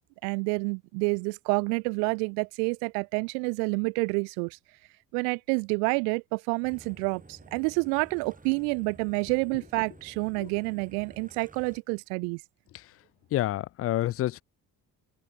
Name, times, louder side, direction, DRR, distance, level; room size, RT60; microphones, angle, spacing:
voice 1, 0.2-4.6 5.1-12.4, right 40 dB or more, 65° right, 0.9 m, -28 dB
sound 1, 6.6-11.8, right 2 dB, 15° right, 8.0 m, -52 dB
voice 2, 13.3-14.4, left 14 dB, 30° left, 0.4 m, -28 dB
open air
figure-of-eight pair, 45°, 50 cm